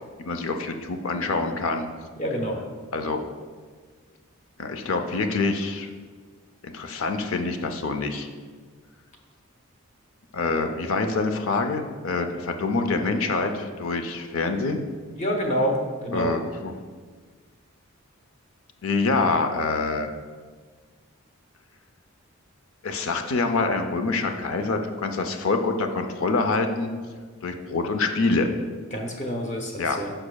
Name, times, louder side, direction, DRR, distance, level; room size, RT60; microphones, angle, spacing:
voice 1, 0.2-1.9 2.9-3.2 4.6-5.9 6.6-8.3 10.3-14.8 16.1-16.7 18.8-20.1 22.8-26.9 27.4-28.5 29.8-30.0, left 3 dB, 70° left, 6 dB, 0.6 m, -26 dB
voice 2, 2.2-2.6 10.6-10.7 15.1-16.4 28.9-30.1, equal, 30° left, 2 dB, 0.8 m, -27 dB
9.8 x 6.1 x 2.3 m, 1.5 s
head